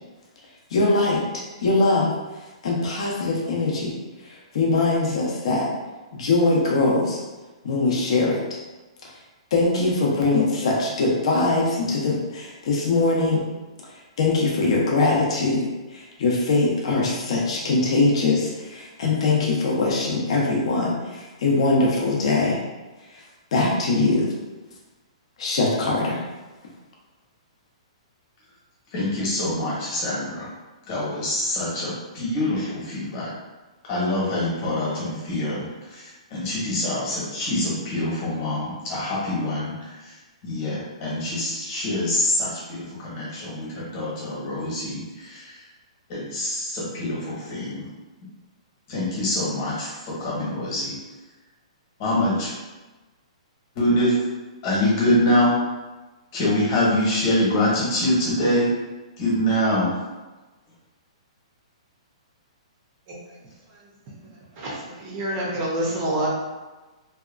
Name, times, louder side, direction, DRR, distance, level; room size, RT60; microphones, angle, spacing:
voice 1, 0.7-2.1 2.6-3.9 4.2-5.7 6.1-7.2 7.6-8.6 9.5-13.4 14.2-22.6 23.1-23.2 23.5-24.3 25.4-26.2, left 3 dB, 60° left, -2 dB, 0.6 m, -22 dB
voice 2, 28.9-30.5 30.9-33.3 33.9-40.2 40.4-45.6 46.1-47.8 48.9-50.9 52.0-52.5 53.7-54.2 54.6-55.5 56.3-58.7 59.2-59.9, left 1 dB, 35° left, -6 dB, 1.0 m, -25 dB
voice 3, 64.6-66.3, right 1 dB, 30° right, -4 dB, 0.6 m, -27 dB
2.7 x 2.2 x 2.4 m, 1.2 s
hypercardioid pair, 160°, 3 cm